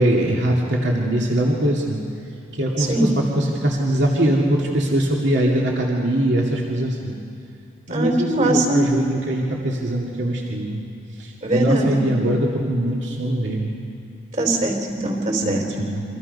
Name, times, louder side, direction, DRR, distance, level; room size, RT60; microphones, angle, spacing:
voice 1, 0.0-2.0 2.5-7.2 7.9-10.8 11.2-13.8 15.4-16.0, right 1 dB, 70° right, -2 dB, 2.4 m, -22 dB
voice 2, 7.9-8.8 11.4-12.1 14.4-15.9, right 2 dB, 40° right, 3 dB, 3.6 m, -21 dB
28.5 x 25.5 x 5.5 m, 2.6 s
head